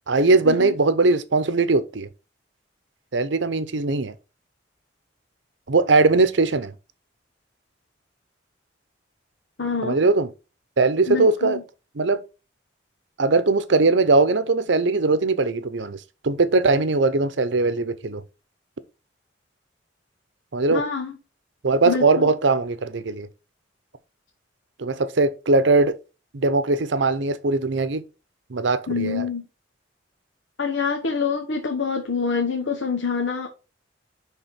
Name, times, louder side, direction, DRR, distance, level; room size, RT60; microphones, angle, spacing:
voice 1, 0.1-2.1 3.1-4.1 5.7-6.7 9.8-10.3 10.8-11.6 12.0-12.2 13.2-16.0 16.2-18.2 20.5-20.8 21.6-23.3 24.8-26.0 26.3-28.0 28.5-29.3, right 3 dB, 75° right, 0.7 m, -20 dB
voice 2, 9.6-10.0 11.1-11.6 20.7-21.2 21.8-22.3 28.9-29.4 30.6-33.5, left 5 dB, 75° left, 1.1 m, -26 dB
10.0 x 3.7 x 4.1 m
head